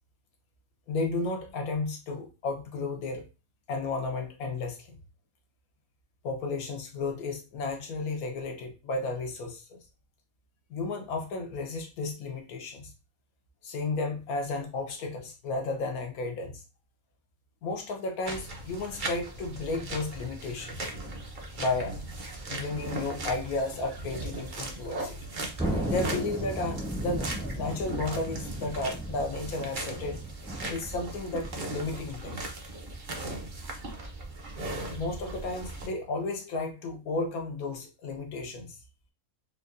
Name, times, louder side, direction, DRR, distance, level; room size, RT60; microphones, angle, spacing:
voice 1, 0.9-3.2 3.7-5.0 6.2-9.8 10.7-12.9 13.6-16.6 17.6-20.8 21.6-22.0 22.5-25.2 25.8-30.2 30.7-32.4 34.9-38.8, left 3 dB, 80° left, 1.3 m, -33 dB
sound 1, 18.3-35.9, right 2 dB, 45° right, 0.8 m, -38 dB
Thunder, 25.6-32.4, right 1 dB, 5° right, 0.6 m, -35 dB
4.7 x 2.3 x 2.5 m
omnidirectional pair, 1.5 m